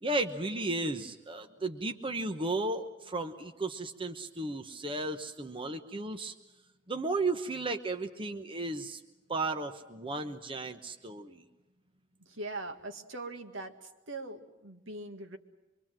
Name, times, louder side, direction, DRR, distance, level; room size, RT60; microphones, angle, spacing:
voice 1, 0.0-6.3 6.9-9.0 9.3-11.4, right 2 dB, 25° right, 6 dB, 1.0 m, -34 dB
voice 2, 12.2-15.4, right 2 dB, 75° right, 6 dB, 1.9 m, -41 dB
25.0 x 23.5 x 7.5 m, 1.1 s
head